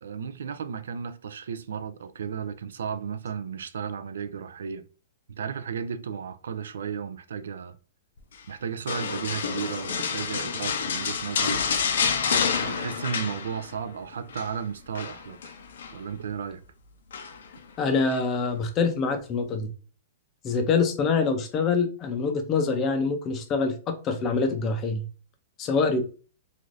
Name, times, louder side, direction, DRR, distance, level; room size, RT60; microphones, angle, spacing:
voice 1, 0.0-4.9 5.3-7.8 8.5-11.6 12.6-15.6 15.9-16.6, right 7 dB, 90° right, 0.3 m, -34 dB
sound 1, 8.9-13.9 14.1-14.5 14.9-16.0 17.1-17.6 18.1-18.2, left 6 dB, 75° left, 0.5 m, -28 dB
voice 2, 17.8-19.7 20.4-25.1 25.6-26.0, left 4 dB, 20° left, 0.4 m, -25 dB
3.2 x 2.4 x 2.5 m
hypercardioid pair, 170°, 0 cm